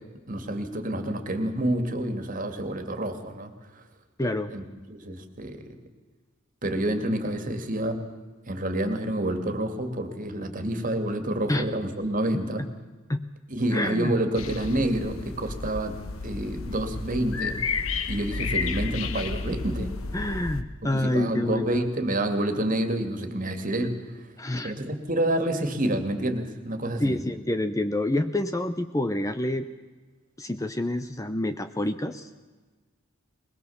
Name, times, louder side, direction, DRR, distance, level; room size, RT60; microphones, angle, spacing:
voice 1, 0.3-3.8 4.5-5.6 6.6-8.0 8.5-12.6 13.5-15.9 16.2-17.6 18.1-19.9 20.9-24.0 24.6-27.2, right 1 dB, 40° right, 7 dB, 2.3 m, -28 dB
voice 2, 4.2-4.5 11.5-11.7 13.1-13.3 13.7-14.1 20.1-21.7 24.4-24.7 27.0-29.7 30.4-32.3, left 1 dB, 15° left, 9 dB, 0.7 m, -27 dB
sound 1, 14.3-20.6, left 4 dB, 70° left, 1.2 m, -32 dB
21.5 x 21.0 x 7.2 m, 1.3 s
head